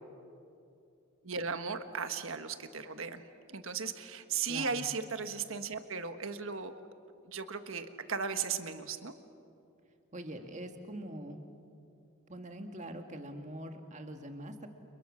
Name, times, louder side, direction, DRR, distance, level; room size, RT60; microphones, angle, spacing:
voice 1, 1.2-6.7 7.2-9.1, right 5 dB, 60° right, 8 dB, 1.5 m, -36 dB
voice 2, 4.5-4.8 10.1-11.4 12.3-14.7, right 1 dB, 35° right, 5 dB, 1.9 m, -43 dB
30.0 x 29.5 x 6.4 m, 2.6 s
head